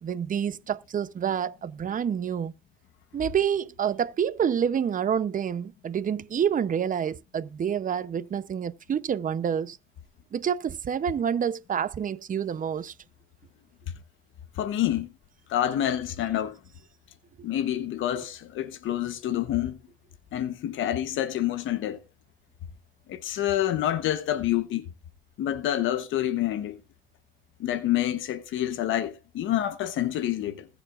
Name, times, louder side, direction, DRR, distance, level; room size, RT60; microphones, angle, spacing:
voice 1, 0.0-2.5 3.1-9.8 10.3-12.9, right 8 dB, 40° right, 0.7 m, -28 dB
voice 2, 14.6-15.1 15.5-16.6 17.4-19.8 20.3-22.0 23.1-24.9 25.4-26.8 27.6-30.7, left 12 dB, 80° left, 1.0 m, -27 dB
20.5 x 7.1 x 2.4 m
cardioid pair, 90°, 20 cm